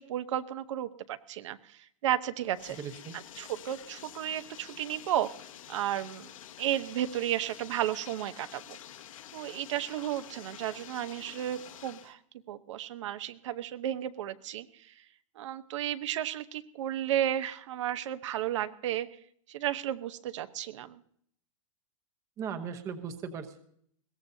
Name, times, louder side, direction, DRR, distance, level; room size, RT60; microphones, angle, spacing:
voice 1, 0.0-2.8 3.1-5.3 5.7-6.3 6.6-8.8 9.3-12.2 12.5-14.9 15.4-19.1 19.5-21.0, right 12 dB, 65° right, 10 dB, 0.9 m, -33 dB
Bathtub (filling or washing), 2.4-12.1, left 11 dB, 85° left, 1.3 m, -49 dB
voice 2, 2.8-3.2 22.4-23.6, right 7 dB, 20° right, 7 dB, 0.9 m, -38 dB
21.5 x 17.0 x 2.8 m, 0.65 s
supercardioid pair, 170°, 17 cm